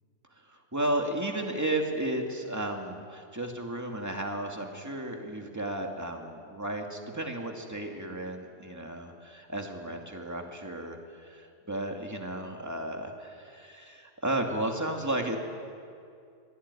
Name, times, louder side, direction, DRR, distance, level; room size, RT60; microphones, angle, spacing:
voice 1, 0.5-15.4, right 1 dB, 15° right, 2 dB, 2.3 m, -33 dB
24.5 x 18.0 x 9.8 m, 2.3 s
omnidirectional pair, 1.3 m